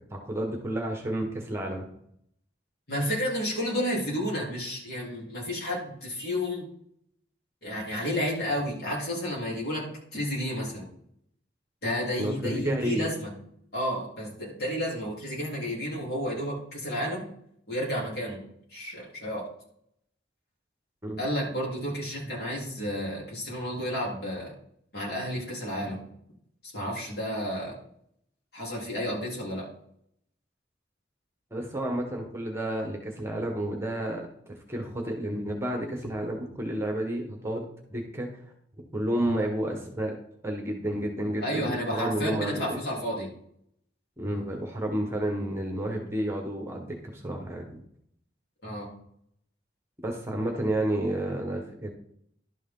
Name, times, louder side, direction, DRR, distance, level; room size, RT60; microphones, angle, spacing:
voice 1, 0.1-1.9 12.2-13.1 21.0-21.2 31.5-34.3 34.7-38.3 38.9-40.1 40.4-42.8 44.2-47.8 50.0-51.9, right 1 dB, 15° right, 2 dB, 1.3 m, -31 dB
voice 2, 2.9-6.7 7.6-9.9 10.1-10.8 11.8-13.3 13.7-17.3 17.7-18.4 18.7-19.5 21.2-24.5 24.9-26.0 26.7-27.8 28.5-29.7 41.4-43.3 48.6-48.9, equal, 60° left, -4 dB, 3.6 m, -31 dB
11.5 x 6.4 x 3.8 m, 0.71 s
head